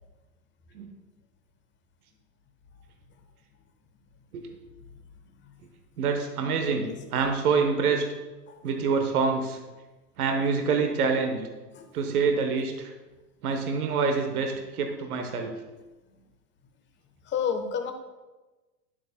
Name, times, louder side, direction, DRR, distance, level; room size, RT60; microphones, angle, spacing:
voice 1, 6.0-8.0 8.6-9.6 10.2-11.5 11.9-12.9 13.4-15.5, right 5 dB, 65° right, 4 dB, 1.0 m, -26 dB
voice 2, 17.3-17.9, left 7 dB, 25° left, 6 dB, 1.0 m, -30 dB
11.5 x 7.5 x 2.2 m, 1.2 s
figure-of-eight pair, 90°, 47 cm